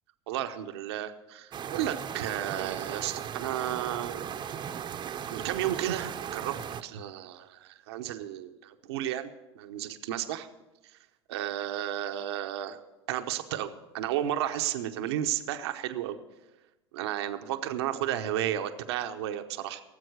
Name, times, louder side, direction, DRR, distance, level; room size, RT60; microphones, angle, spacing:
voice 1, 0.3-4.2 5.3-6.5 6.8-10.5 11.3-12.8 13.1-16.2 16.9-19.8, right 11 dB, 75° right, 7 dB, 0.9 m, -33 dB
sound 1, 1.5-6.8, right 8 dB, 35° right, 0.8 m, -37 dB
18.0 x 7.6 x 6.6 m, 1.0 s
hypercardioid pair, 90°, 14 cm